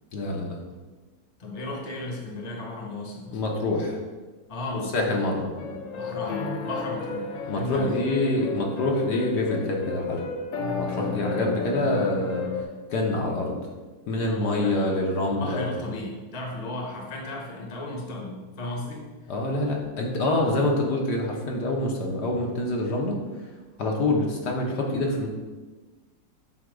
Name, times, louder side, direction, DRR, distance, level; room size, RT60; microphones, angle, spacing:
voice 1, 0.1-0.6 3.3-4.0 4.9-5.8 7.5-10.3 10.8-12.4 12.9-13.6 14.1-15.7 19.3-23.2 23.8-25.3, left 2 dB, 65° left, -1 dB, 1.5 m, -26 dB
voice 2, 1.4-3.4 4.5-5.3 5.9-7.9 14.3-19.3, left 2 dB, 25° left, -1 dB, 1.0 m, -35 dB
sound 1, 5.6-12.6, left 4 dB, 85° left, 1.6 m, -33 dB
8.0 x 2.9 x 6.1 m, 1.3 s
omnidirectional pair, 2.0 m